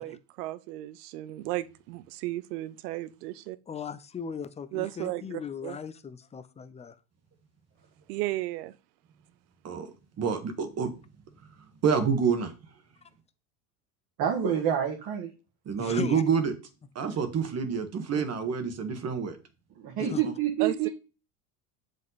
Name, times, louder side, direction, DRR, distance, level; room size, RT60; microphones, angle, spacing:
voice 1, 0.0-3.6 4.7-5.8 8.1-8.8 20.6-20.9, right 17 dB, 85° right, 0.7 m, -34 dB
voice 2, 3.7-6.9 15.8-16.2 20.0-20.2, left 6 dB, 15° left, 0.5 m, -38 dB
voice 3, 10.2-10.9 11.8-12.5 15.6-16.5 16.9-19.4 20.0-20.2, right 6 dB, 35° right, 1.4 m, -27 dB
voice 4, 14.2-15.3 19.8-20.9, right 9 dB, 50° right, 1.7 m, -27 dB
7.4 x 5.2 x 4.1 m
supercardioid pair, 120°, 45 cm